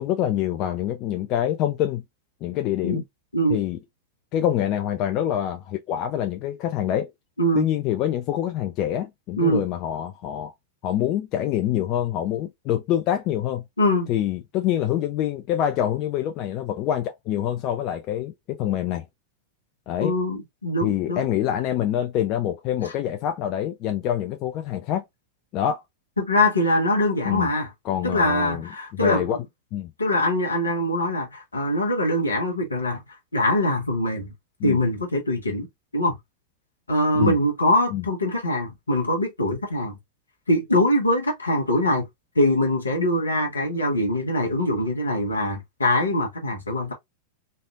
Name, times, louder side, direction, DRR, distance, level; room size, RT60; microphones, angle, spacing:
voice 1, 0.0-2.0 2.4-3.0 3.5-3.8 4.3-7.1 7.5-10.5 10.8-13.6 14.1-19.1 19.9-20.1 20.8-25.0 25.5-25.8 27.2-27.5 27.8-29.4 29.7-29.9 34.6-34.8 37.1-37.4 37.9-38.0, left 11 dB, 40° left, 0.4 m, -26 dB
voice 2, 13.8-14.1 20.0-21.2 22.8-22.9 26.2-27.7 28.0-29.4 30.0-33.0 33.3-34.3 34.6-35.7 35.9-36.2 36.9-40.0 40.5-42.0 42.3-46.9, left 1 dB, 80° left, 1.2 m, -23 dB
3.2 x 2.6 x 2.4 m
figure-of-eight pair, 90°, 0 cm